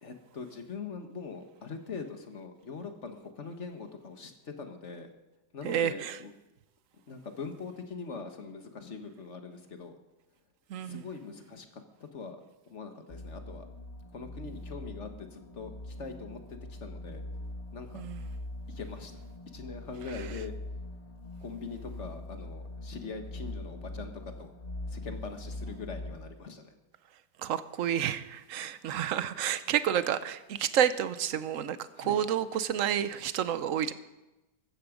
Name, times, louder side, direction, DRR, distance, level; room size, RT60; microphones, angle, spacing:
voice 1, 0.0-5.1 5.5-6.3 7.1-9.9 10.8-12.4 12.7-13.6 14.1-17.2 17.7-18.0 18.7-19.1 19.5-20.5 21.4-24.1 24.4-24.5 24.9-26.7 28.5-28.7 31.9-32.2, left 4 dB, 40° left, 6 dB, 1.7 m, -42 dB
voice 2, 5.6-6.2 10.7-11.0 17.9-18.2 27.4-33.9, right 9 dB, 60° right, 13 dB, 1.0 m, -30 dB
sound 1, 13.1-26.2, left 1 dB, 25° left, 1.9 m, -42 dB
15.0 x 13.5 x 5.2 m, 1.0 s
omnidirectional pair, 1.9 m